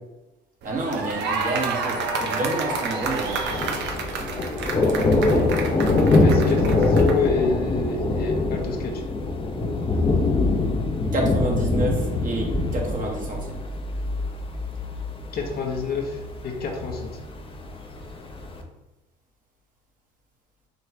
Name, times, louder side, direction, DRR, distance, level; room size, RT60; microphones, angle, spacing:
voice 1, 0.6-3.4 11.1-13.6, right 1 dB, 40° right, -2 dB, 1.5 m, -28 dB
sound 1, 0.6-7.3, right 4 dB, 60° right, 0.8 m, -30 dB
Thunder, 3.0-18.6, left 2 dB, 25° left, 0.8 m, -24 dB
voice 2, 6.2-8.9 15.3-16.2 16.4-17.1, left 4 dB, 50° left, 1 dB, 1.0 m, -27 dB
5.1 x 3.0 x 2.9 m, 1.0 s
hypercardioid pair, 60°, 20 cm